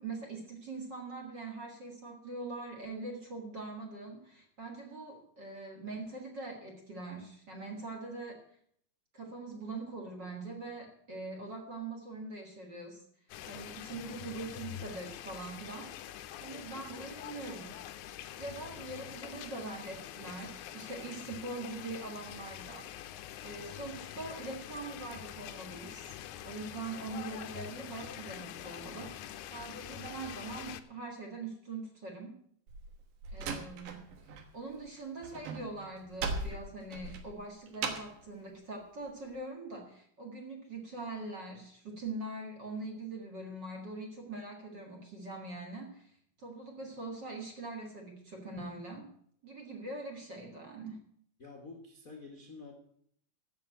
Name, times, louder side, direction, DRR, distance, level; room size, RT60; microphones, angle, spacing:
voice 1, 0.0-8.4 9.1-13.0 13.5-15.9 16.4-17.7 18.4-22.9 23.4-26.2 26.4-32.4 33.3-49.1 49.4-51.0, right 3 dB, 40° right, 3 dB, 1.8 m, -43 dB
sound 1, 13.3-30.8, left 11 dB, 80° left, 1.7 m, -45 dB
Slam, 32.7-34.5 34.7-38.2, right 4 dB, 75° right, 3.0 m, -39 dB
voice 2, 51.4-52.7, left 3 dB, 65° left, 2 dB, 0.8 m, -48 dB
14.5 x 6.0 x 7.9 m, 0.66 s
omnidirectional pair, 4.3 m